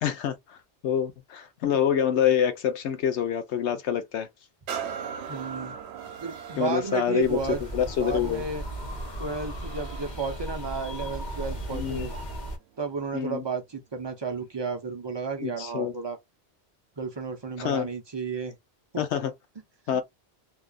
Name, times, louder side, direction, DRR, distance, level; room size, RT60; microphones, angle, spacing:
voice 1, 0.0-0.6 0.8-4.3 6.6-7.4 7.7-8.4 11.7-12.1 13.1-13.4 15.4-15.9 17.6-17.9 19.0-19.3 19.9-20.0, left 8 dB, 85° left, 1.0 m, -26 dB
sound 1, 4.7-12.3 12.8-13.0, right 7 dB, 75° right, 0.8 m, -41 dB
voice 2, 5.3-5.8 6.2-7.6 8.0-8.6 9.2-12.1 12.8-16.2 17.0-18.5 18.9-19.0 19.9-20.0, right 5 dB, 40° right, 0.4 m, -32 dB
Wind blowing, 7.2-12.6, equal, 45° left, 1.0 m, -36 dB
2.7 x 2.3 x 2.2 m
omnidirectional pair, 1.1 m